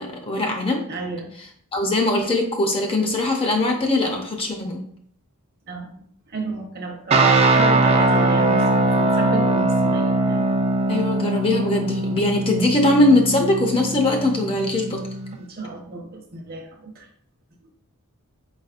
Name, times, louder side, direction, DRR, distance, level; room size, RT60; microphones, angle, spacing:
voice 1, 0.0-0.9 1.7-4.8 10.9-15.0, left 2 dB, 25° left, 2 dB, 0.5 m, -21 dB
voice 2, 0.9-1.3 5.7-6.0 6.3-10.5 15.4-17.1, right 2 dB, 45° right, 1 dB, 0.9 m, -32 dB
sound 1, 7.1-15.4, right 2 dB, 30° right, 0.4 m, -21 dB
4.1 x 4.0 x 2.5 m, 0.62 s
head